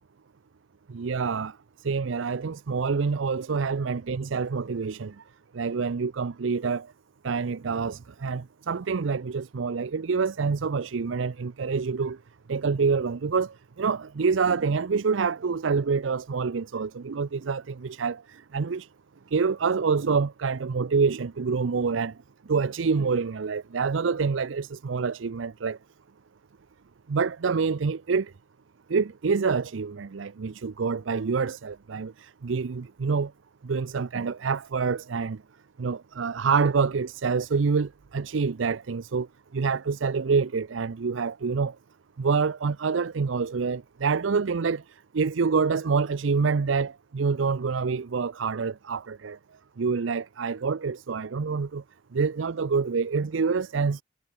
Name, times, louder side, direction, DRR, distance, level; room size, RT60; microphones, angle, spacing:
voice 1, 0.9-1.6 1.8-5.2 5.5-6.9 7.2-12.2 12.5-18.9 19.3-22.1 22.5-25.8 27.1-28.3 28.9-33.3 33.6-35.4 35.8-39.3 39.5-41.7 42.2-44.8 45.1-49.4 49.8-51.8 52.1-54.0, right 5 dB, 85° right, 0.5 m, -27 dB
head